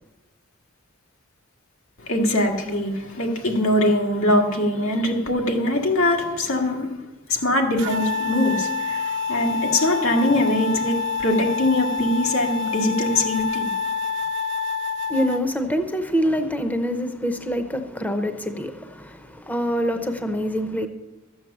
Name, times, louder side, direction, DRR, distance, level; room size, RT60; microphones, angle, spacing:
voice 1, 2.0-6.9 7.3-13.7, left 1 dB, 90° left, 1.9 m, -22 dB
sound 1, 7.8-15.4, left 5 dB, 65° right, 0.9 m, -27 dB
voice 2, 15.1-20.9, equal, 10° left, 0.7 m, -25 dB
13.0 x 7.7 x 7.1 m
head